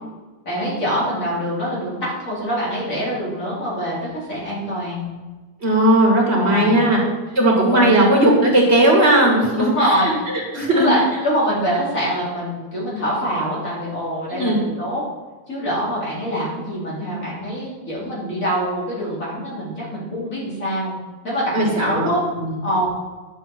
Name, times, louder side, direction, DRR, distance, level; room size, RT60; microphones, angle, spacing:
voice 1, 0.5-5.2 6.3-6.9 7.7-7.9 9.5-10.2 10.7-15.0 15.5-21.0 21.2-22.2 22.6-22.9, equal, 70° left, -7 dB, 4.2 m, -24 dB
voice 2, 5.6-7.0 7.4-10.1 10.5-10.9 14.4-14.6 21.5-22.1 22.4-22.5, right 1 dB, 50° right, -3 dB, 2.8 m, -16 dB
11.0 x 7.6 x 4.5 m, 1.3 s
omnidirectional pair, 1.5 m